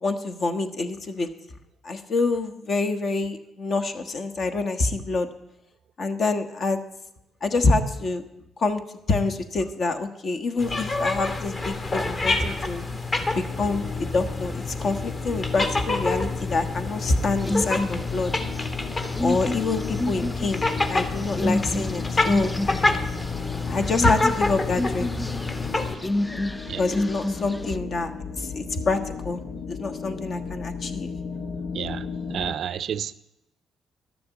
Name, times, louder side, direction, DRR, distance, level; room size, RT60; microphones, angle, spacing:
voice 1, 0.0-1.3 1.8-5.3 6.0-6.8 7.4-8.2 8.6-8.8 9.1-12.8 13.3-18.3 19.2-20.6 20.9-22.5 23.7-25.1 26.8-28.1 28.4-29.0 29.2-29.4 29.7-31.1, left 3 dB, 50° left, 1.2 m, -26 dB
sound 1, 10.6-25.9, left 2 dB, 35° left, 1.4 m, -27 dB
sound 2, 13.2-32.5, left 6 dB, 80° left, 1.1 m, -37 dB
sound 3, 17.4-27.8, left 1 dB, 10° left, 0.4 m, -30 dB
voice 2, 31.7-33.1, right 8 dB, 65° right, 0.5 m, -31 dB
12.0 x 6.9 x 8.1 m
cardioid pair, 90°, 0 cm